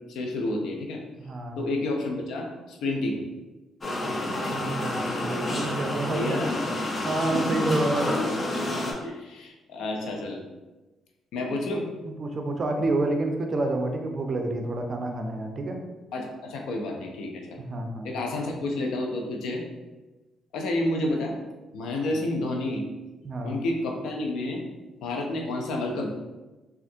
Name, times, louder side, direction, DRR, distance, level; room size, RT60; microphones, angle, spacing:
voice 1, 0.1-1.0 1.6-3.3 6.1-6.6 7.4-7.8 9.0-10.4 11.3-11.9 16.1-17.6 18.0-19.6 20.5-21.4 21.7-22.8 23.4-24.6 25.0-26.1, left 2 dB, 80° left, 1 dB, 0.5 m, -30 dB
voice 2, 1.3-1.6 4.5-6.4 7.0-8.1 12.2-15.8 17.6-18.1 23.2-23.6, right 2 dB, 40° right, 4 dB, 0.5 m, -28 dB
sound 1, 3.8-8.9, left 1 dB, 35° left, 0.7 m, -29 dB
3.3 x 2.4 x 2.7 m, 1.1 s
cardioid pair, 90°, 0 cm